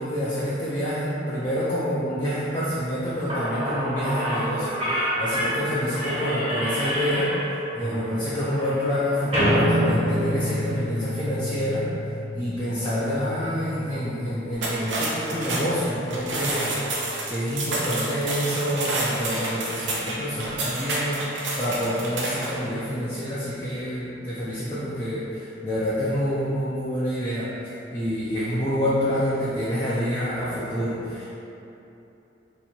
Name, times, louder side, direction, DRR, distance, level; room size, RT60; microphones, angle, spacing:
voice 1, 0.0-7.3 7.7-11.9 12.3-16.7 17.3-21.3 21.6-27.5 27.9-31.2, equal, 25° left, -10 dB, 0.5 m, -27 dB
Slam / Squeak, 3.0-3.1 3.3-10.8, equal, 30° right, 1.0 m, -28 dB
sound 1, 9.4-20.1, left 1 dB, 65° left, 1.0 m, -32 dB
sound 2, 14.5-22.6, right 2 dB, 85° right, 0.6 m, -29 dB
2.9 x 2.7 x 4.2 m, 2.9 s
head